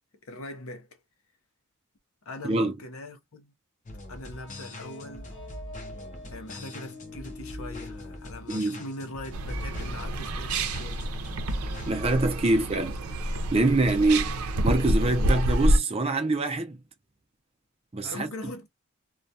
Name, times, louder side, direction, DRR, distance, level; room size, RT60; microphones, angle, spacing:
voice 1, 0.2-1.0 2.3-3.5 4.1-5.3 6.3-11.0 12.4-12.6 18.0-18.7, left 1 dB, 70° left, 0.7 m, -41 dB
sound 1, 3.9-11.9, left 1 dB, 35° left, 0.6 m, -42 dB
sound 2, 4.3-9.5, left 3 dB, 55° left, 1.1 m, -46 dB
voice 2, 8.5-8.8 11.9-13.0 13.3-16.8 17.9-18.3, right 2 dB, 25° right, 0.5 m, -25 dB
sound 3, 9.3-15.8, right 1 dB, 85° right, 0.6 m, -27 dB
2.2 x 2.2 x 2.6 m
head